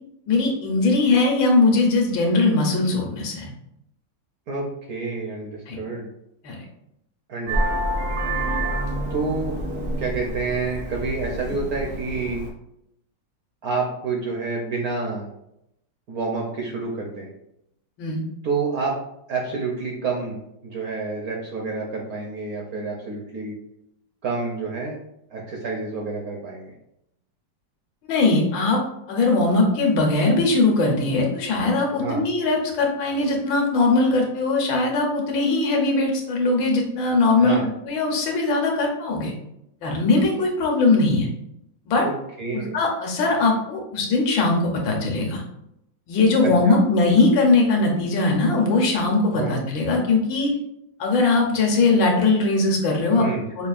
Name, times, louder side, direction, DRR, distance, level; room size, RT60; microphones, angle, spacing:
voice 1, 0.3-3.5 5.7-5.8 6.4-6.6 18.0-18.2 28.1-28.8 29.1-39.3 39.8-41.3 41.9-42.1 42.5-45.4 46.1-50.5 51.0-53.3 53.6-53.7, left 3 dB, 80° left, 1 dB, 1.5 m, -20 dB
voice 2, 4.5-6.1 7.3-7.8 9.1-9.6 10.0-12.5 13.6-15.3 16.1-17.3 18.4-18.9 19.3-23.6 24.2-25.0 25.3-26.7 32.0-32.2 37.4-37.6 42.0-42.8 46.4-46.8 49.3-49.6 53.1-53.4, right 4 dB, 65° right, -1 dB, 0.9 m, -28 dB
Vehicle horn car horn honking, 7.5-12.5, right 1 dB, 85° right, 0.5 m, -27 dB
5.3 x 2.4 x 2.4 m, 0.80 s
omnidirectional pair, 2.1 m